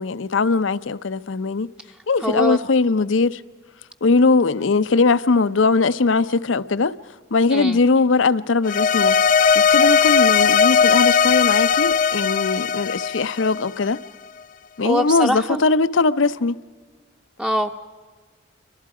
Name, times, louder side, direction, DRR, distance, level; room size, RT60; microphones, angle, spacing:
voice 1, 0.0-1.7 2.1-3.4 4.0-6.9 7.3-9.2 9.5-14.0 14.8-16.6, left 4 dB, 90° left, 0.7 m, -20 dB
voice 2, 2.2-2.6 7.5-7.8 14.8-15.6 17.4-17.7, equal, 5° right, 0.6 m, -22 dB
sound 1, 8.6-14.0, left 6 dB, 45° left, 0.5 m, -18 dB
29.5 x 23.5 x 4.9 m
head